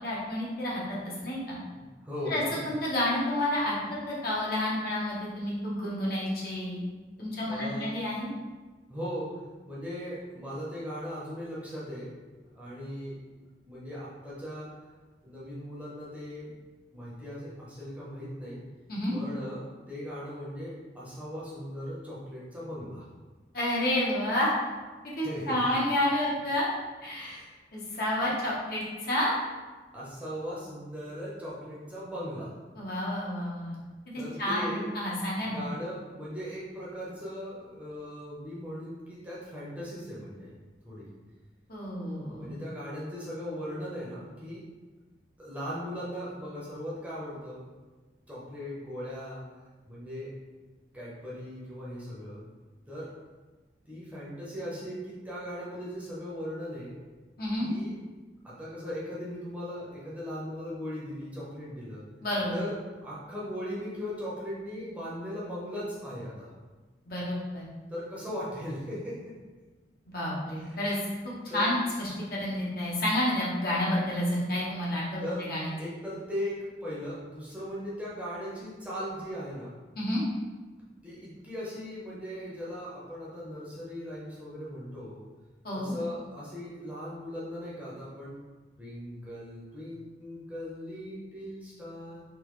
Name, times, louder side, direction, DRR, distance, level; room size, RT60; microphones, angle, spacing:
voice 1, 0.0-1.6 2.3-6.8 7.2-8.3 18.9-19.1 23.5-24.5 25.2-26.7 27.0-27.4 27.7-29.3 32.7-33.8 34.1-35.6 41.7-42.6 57.4-57.7 62.2-62.6 67.1-67.7 70.1-71.0 71.5-75.7 80.0-80.2 85.6-86.0, left 1 dB, 55° left, -6 dB, 1.0 m, -30 dB
voice 2, 2.0-2.6 7.5-7.9 8.9-9.4 9.6-12.1 12.4-13.2 13.6-14.7 15.2-16.5 16.9-18.6 19.1-23.0 25.2-25.5 27.1-27.5 27.9-28.0 28.2-28.3 29.9-32.5 34.2-34.8 35.4-40.5 40.8-41.1 42.4-44.6 45.4-47.6 48.3-49.4 49.9-50.3 50.9-52.4 52.9-53.1 53.9-57.0 57.6-57.9 58.4-62.0 62.5-62.7 63.0-66.5 67.9-69.2 70.6-70.8 71.5-71.7 75.2-75.4 75.8-79.7 81.0-85.2 85.7-88.4 88.8-92.2, equal, 10° right, -8 dB, 0.7 m, -38 dB
3.7 x 2.9 x 3.1 m, 1.3 s
head